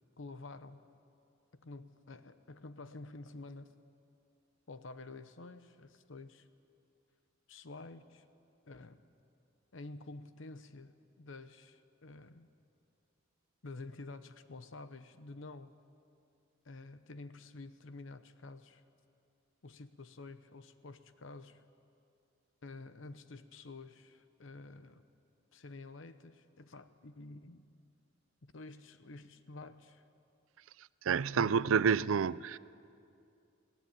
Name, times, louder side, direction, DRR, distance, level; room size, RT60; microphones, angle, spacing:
voice 1, 0.2-0.8 1.5-3.8 4.7-6.5 7.5-8.2 8.7-9.0 9.7-12.5 13.6-15.7 16.6-18.8 19.6-21.6 22.6-25.0 25.5-27.7 28.4-30.0 31.3-31.7, left 2 dB, 70° left, 0.9 m, -49 dB
voice 2, 31.0-32.6, right 6 dB, 75° right, 0.4 m, -28 dB
22.0 x 16.0 x 8.9 m
head